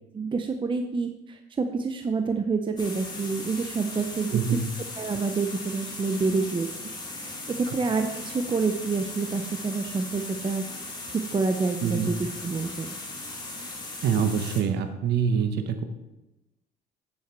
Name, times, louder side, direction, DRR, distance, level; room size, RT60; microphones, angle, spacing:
voice 1, 0.1-4.6 4.9-6.8 7.1-10.6 11.1-12.9, right 4 dB, 25° right, 7 dB, 0.7 m, -28 dB
sound 1, 2.8-14.6, left 2 dB, 25° left, 2.4 m, -38 dB
voice 2, 4.3-4.6 11.8-12.1 14.0-15.8, right 7 dB, 65° right, 8 dB, 0.9 m, -25 dB
8.3 x 7.5 x 4.4 m, 1.0 s
supercardioid pair, 80°, 19 cm